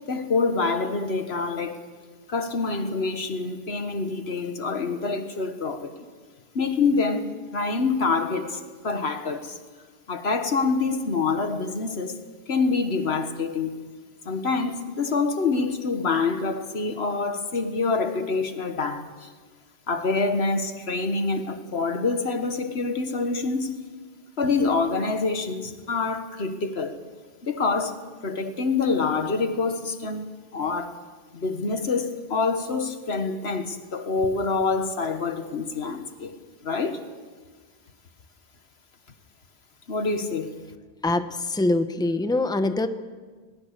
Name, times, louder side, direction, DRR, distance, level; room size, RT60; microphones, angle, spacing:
voice 1, 0.1-1.9 2.3-5.9 6.6-9.6 10.1-12.2 12.5-13.8 14.3-19.3 19.9-23.8 24.4-27.0 27.4-27.9 28.2-31.0 31.3-36.4 36.6-37.0 39.9-40.5, left 4 dB, 90° left, 1.7 m, -26 dB
voice 2, 41.0-42.9, left 2 dB, 5° left, 0.9 m, -24 dB
21.0 x 19.5 x 6.8 m
omnidirectional pair, 1.0 m